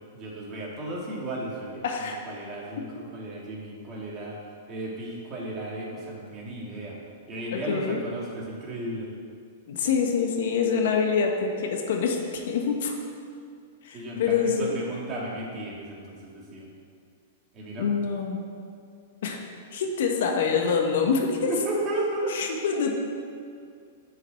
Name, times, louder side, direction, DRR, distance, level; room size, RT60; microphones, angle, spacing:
voice 1, 0.1-4.4 4.7-7.0 7.3-9.1 13.9-16.7 17.5-17.9 21.2-22.4, right 1 dB, 30° right, -4 dB, 2.7 m, -34 dB
voice 2, 1.8-2.2 7.5-8.0 9.7-12.9 13.8-14.8 17.8-18.4 19.2-19.4 19.7-21.5 22.3-22.9, left 5 dB, 70° left, 2 dB, 1.4 m, -25 dB
7.7 x 5.9 x 7.7 m, 2.3 s
hypercardioid pair, 130°, 0 cm